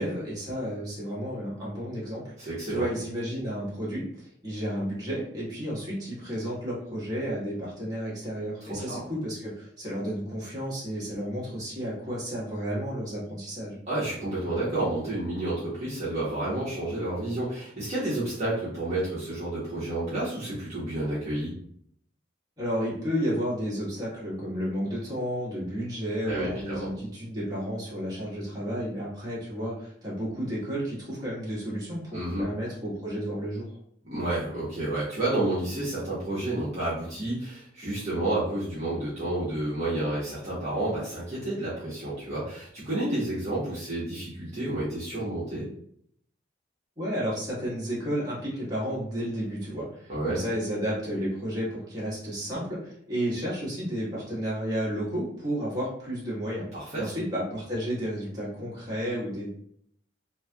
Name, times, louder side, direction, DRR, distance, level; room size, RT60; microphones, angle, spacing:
voice 1, 0.0-13.8 22.6-33.7 47.0-56.7 56.9-59.5, equal, 20° right, -8 dB, 1.3 m, -32 dB
voice 2, 2.4-2.9 8.7-9.0 13.9-21.5 26.2-26.9 32.1-32.4 34.1-45.7 50.1-50.4 56.7-57.1, right 1 dB, 35° right, -10 dB, 1.0 m, -30 dB
3.2 x 2.7 x 2.3 m, 0.66 s
head